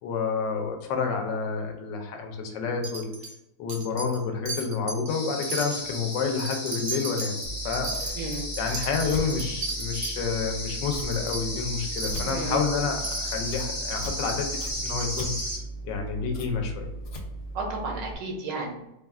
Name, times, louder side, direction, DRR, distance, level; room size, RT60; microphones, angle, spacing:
voice 1, 0.0-3.1 3.6-7.4 7.6-8.2 8.6-15.3 15.8-16.9, left 5 dB, 85° left, 4 dB, 1.4 m, -29 dB
Wind chime, 2.8-3.4 3.7-4.2 4.5-5.1 5.4-10.1 10.6-10.7 10.9-11.4 12.0-12.4 13.0-13.5 14.2-14.4 15.0-15.1 15.4-15.5, right 3 dB, 50° right, 0.8 m, -35 dB
sound 1, 5.1-15.6, left 1 dB, 10° left, 1.3 m, -35 dB
Scissors, 7.4-18.1, right 1 dB, 50° left, 1.1 m, -38 dB
voice 2, 12.3-12.7 17.5-18.7, right 3 dB, 90° right, 1 dB, 1.6 m, -32 dB
4.6 x 2.3 x 3.5 m, 0.92 s
omnidirectional pair, 1.9 m